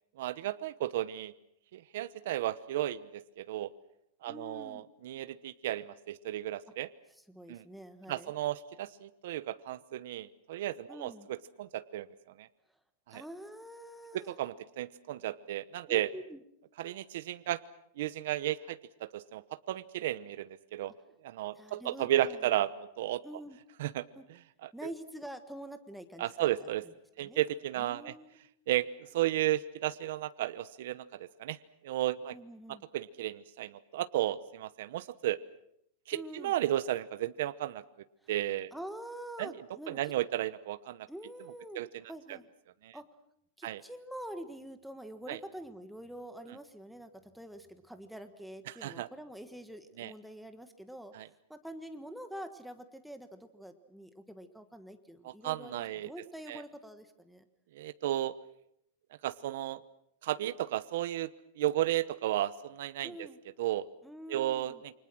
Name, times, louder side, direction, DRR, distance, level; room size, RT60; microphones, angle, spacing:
voice 1, 0.2-1.3 1.7-3.7 4.2-6.9 7.5-7.6 8.1-12.1 12.4-12.5 13.1-13.2 14.1-16.1 16.8-17.6 18.0-20.9 21.2-23.2 23.8-24.0 24.6-24.9 26.2-26.9 27.2-28.1 28.7-31.6 31.8-32.4 32.7-35.4 36.1-37.8 38.3-38.7 39.4-41.1 41.7-41.9 42.3-42.4 42.8-43.0 43.6-43.8 45.3-45.4 48.7-49.1 50.0-50.1 51.1-51.3 55.2-56.1 56.5-56.6 57.7-58.3 59.2-59.8 60.2-61.3 61.6-63.3 63.6-63.9 64.3-64.9, right 13 dB, 60° right, 13 dB, 0.9 m, -34 dB
voice 2, 4.3-4.8 7.3-8.3 10.9-11.3 13.1-14.4 15.9-16.4 21.5-22.4 23.2-23.6 24.1-24.2 24.7-26.9 27.2-27.4 27.8-28.4 32.3-32.8 36.1-36.5 38.7-40.1 41.1-41.8 42.1-42.5 42.9-43.0 43.6-51.1 51.5-57.4 63.0-63.4 64.0-64.8, right 1 dB, ahead, 8 dB, 1.4 m, -46 dB
28.5 x 25.0 x 6.3 m, 0.74 s
supercardioid pair, 165°, 0 cm